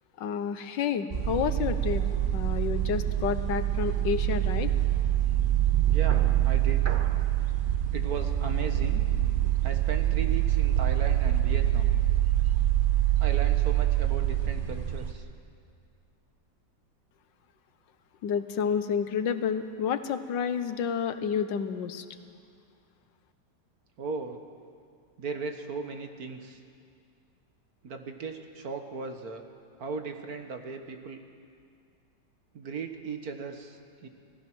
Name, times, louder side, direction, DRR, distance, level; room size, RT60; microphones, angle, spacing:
voice 1, 0.2-2.0 2.3-4.7 18.2-22.0, left 7 dB, 85° left, 10 dB, 1.6 m, -30 dB
sound 1, 1.1-15.1, right 12 dB, 40° right, 0.8 m, -25 dB
voice 2, 5.9-7.0 7.9-9.0 9.6-11.9 13.2-15.3 24.0-24.4 25.2-26.6 27.8-29.4 29.8-31.2 32.5-34.1, right 4 dB, 55° right, 5 dB, 1.8 m, -37 dB
26.5 x 17.0 x 6.2 m, 2.2 s
omnidirectional pair, 2.0 m